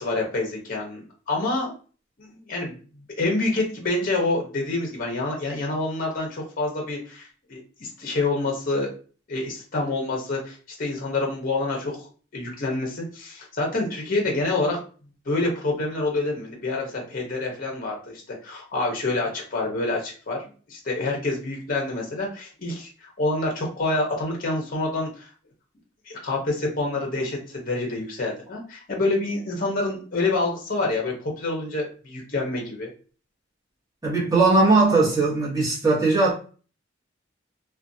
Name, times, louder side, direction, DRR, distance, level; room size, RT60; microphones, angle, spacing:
voice 1, 0.0-1.7 2.2-2.8 3.2-8.9 9.3-12.1 12.3-14.8 15.3-20.4 20.7-25.3 26.1-32.9, left 2 dB, 45° left, 0.6 m, -27 dB
voice 2, 34.0-36.3, right 3 dB, 20° right, 1.0 m, -19 dB
2.4 x 2.2 x 2.5 m
head